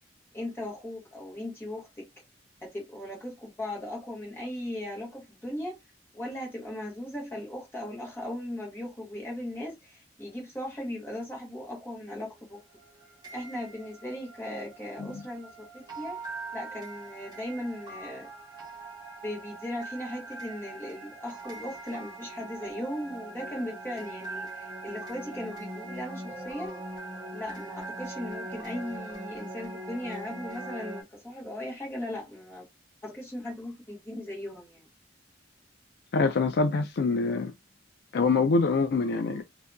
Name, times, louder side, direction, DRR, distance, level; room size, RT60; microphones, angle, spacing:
voice 1, 0.3-2.1 2.6-5.8 6.1-12.6 13.3-16.2 16.5-18.3 19.2-26.8 27.3-32.6 33.0-34.9, left 1 dB, 10° left, 1.3 m, -38 dB
sound 1, 12.4-31.0, right 2 dB, 20° right, 1.2 m, -41 dB
voice 2, 36.1-37.5 38.1-39.4, left 4 dB, 60° left, 0.4 m, -25 dB
2.7 x 2.6 x 2.2 m
head